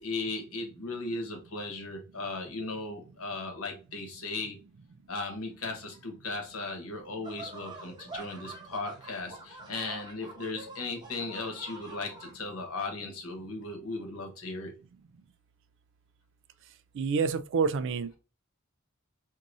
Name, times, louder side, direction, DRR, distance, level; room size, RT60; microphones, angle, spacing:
voice 1, 0.0-4.6 5.1-14.7, left 3 dB, 85° left, 1.1 m, -37 dB
sound 1, 7.2-12.3, right 2 dB, 20° right, 1.0 m, -46 dB
voice 2, 16.9-18.2, right 5 dB, 60° right, 0.4 m, -28 dB
4.7 x 2.7 x 2.6 m
head